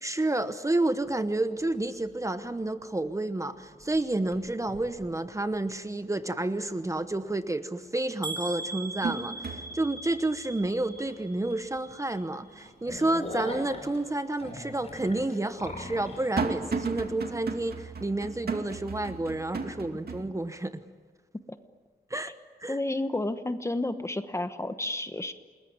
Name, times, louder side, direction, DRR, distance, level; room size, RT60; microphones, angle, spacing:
voice 1, 0.0-20.8 22.1-22.3 22.6-22.8, right 2 dB, 20° right, 10 dB, 1.0 m, -30 dB
sound 1, 1.0-1.1 1.6-2.1 2.5-3.3 3.5-5.8 6.2-6.3 7.7-7.8 8.3-13.5 13.9-14.0 14.9-20.2, right 4 dB, 65° right, 2.4 m, -37 dB
sound 2, 8.2-12.2 12.5-13.1 13.6-13.7 14.0-14.1, right 2 dB, 55° left, 3.6 m, -40 dB
sound 3, 11.0-11.1 11.6-11.7 12.0-12.1 12.5-16.3, left 1 dB, 35° left, 5.3 m, -40 dB
voice 2, 22.7-25.3, left 2 dB, 15° left, 10 dB, 1.1 m, -31 dB
29.0 x 21.0 x 9.5 m, 1.4 s
wide cardioid pair, 170°, 17 cm